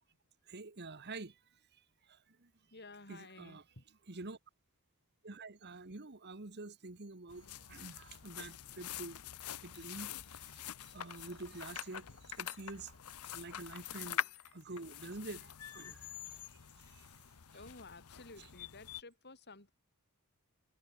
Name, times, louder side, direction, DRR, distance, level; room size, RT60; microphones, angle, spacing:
voice 1, 0.5-1.4 2.1-2.5 3.1-3.6 4.1-4.4 5.2-9.2 9.5-13.0 13.3-14.2 14.5-16.6 16.9-17.1, right 3 dB, 50° right, 1.5 m, -48 dB
voice 2, 2.3-3.8 17.5-19.7, left 3 dB, 50° left, 6.8 m, -54 dB
sound 1, 7.3-19.0, left 10 dB, 80° left, 0.9 m, -45 dB
head